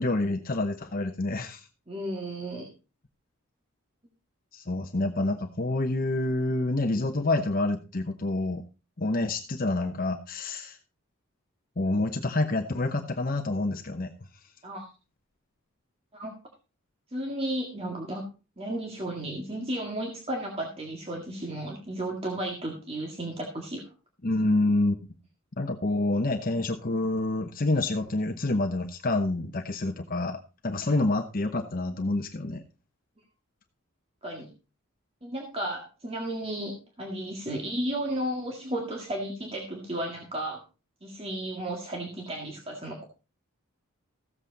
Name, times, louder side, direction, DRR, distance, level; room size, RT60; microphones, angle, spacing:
voice 1, 0.0-1.7 4.5-8.6 9.0-10.8 11.8-14.1 24.2-25.0 25.6-32.6, left 2 dB, 45° left, 5 dB, 0.9 m, -27 dB
voice 2, 1.9-2.7 14.6-14.8 16.1-16.4 17.1-18.2 18.6-23.9 34.2-34.5 35.2-40.6 41.0-43.0, right 1 dB, 30° right, 0 dB, 1.9 m, -33 dB
14.5 x 8.1 x 4.0 m, 0.32 s
head